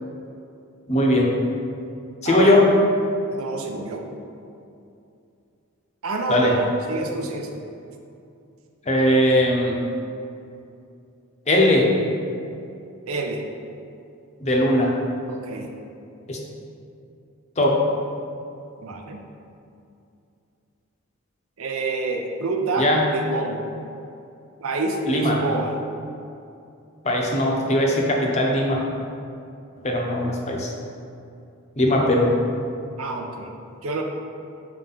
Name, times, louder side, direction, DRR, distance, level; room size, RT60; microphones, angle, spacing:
voice 1, 0.9-1.3 2.2-2.6 6.3-6.5 8.9-9.8 11.5-11.8 14.4-14.9 16.3-16.4 17.6-17.8 22.8-23.0 25.1-25.4 27.0-28.8 29.8-30.7 31.8-32.3, left 1 dB, 30° left, -1 dB, 0.7 m, -19 dB
voice 2, 2.2-2.6 3.3-4.0 6.0-7.5 13.1-13.4 15.3-15.7 18.8-19.2 21.6-23.6 24.6-25.7 33.0-33.5 33.8-34.0, right 3 dB, 75° right, 2 dB, 0.6 m, -27 dB
5.8 x 4.6 x 3.9 m, 2.6 s
head